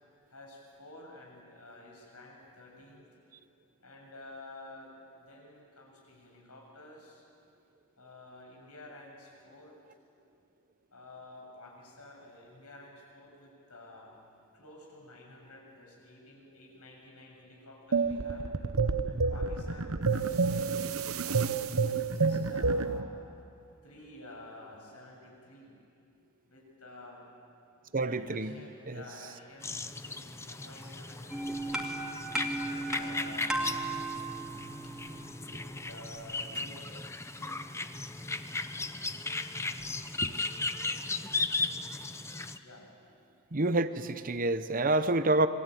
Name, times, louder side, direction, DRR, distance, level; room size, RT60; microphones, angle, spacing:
voice 1, 0.3-3.1 3.8-7.2 8.0-9.8 10.9-14.2 14.5-18.5 19.0-21.6 22.1-23.3 23.8-25.8 26.4-27.3 27.8-31.8 32.6-34.0 34.8-35.0 35.3-37.6 42.6-42.9, left 2 dB, 90° left, -1 dB, 7.6 m, -51 dB
sound 1, 17.9-23.1, right 4 dB, 70° right, 1.0 m, -29 dB
voice 2, 27.9-28.6 28.9-29.0 40.2-40.3 43.5-45.5, right 2 dB, 40° right, 12 dB, 0.9 m, -28 dB
sound 2, 29.6-42.6, left 3 dB, 10° left, 0.8 m, -36 dB
sound 3, 31.3-36.6, right 2 dB, 5° right, 2.6 m, -36 dB
27.5 x 22.0 x 9.3 m, 2.5 s
head